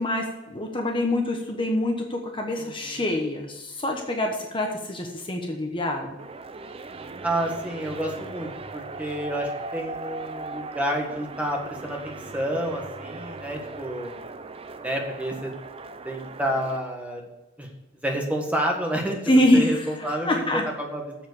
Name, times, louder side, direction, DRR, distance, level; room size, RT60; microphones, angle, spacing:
voice 1, 0.0-6.2 19.3-20.6, left 1 dB, 25° left, 2 dB, 1.0 m, -25 dB
voice 2, 2.6-3.0 7.2-14.1 14.8-15.5 16.0-17.2 17.6-17.7 18.0-19.2 19.5-21.0, right 1 dB, 5° right, 1 dB, 1.5 m, -29 dB
sound 1, 6.2-16.8, right 3 dB, 25° right, 0.5 m, -38 dB
7.5 x 7.1 x 8.1 m, 1.1 s
head